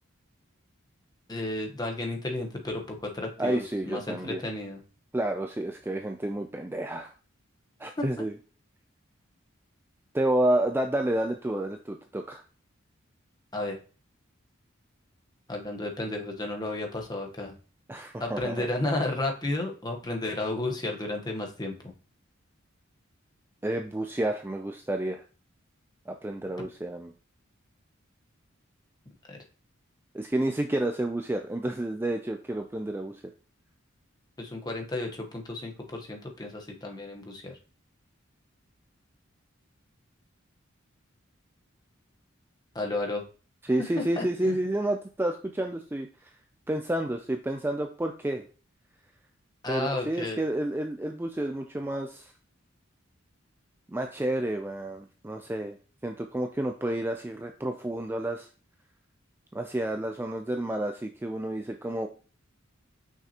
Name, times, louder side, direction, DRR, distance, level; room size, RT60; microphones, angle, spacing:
voice 1, 1.3-4.8 8.0-8.1 13.5-13.8 15.5-17.5 18.2-21.7 29.3-29.4 34.4-37.6 42.7-43.2 43.8-43.9 44.2-44.6 49.6-50.4, left 2 dB, 20° left, 2 dB, 1.0 m, -32 dB
voice 2, 3.4-4.4 5.1-7.1 7.8-8.3 10.1-12.4 17.9-18.7 23.6-25.2 26.1-27.1 30.1-33.2 43.6-46.3 46.7-48.4 49.7-52.3 53.9-55.8 56.0-58.5 59.5-62.1, right 1 dB, 10° right, 5 dB, 0.4 m, -30 dB
5.9 x 5.8 x 2.9 m, 0.37 s
head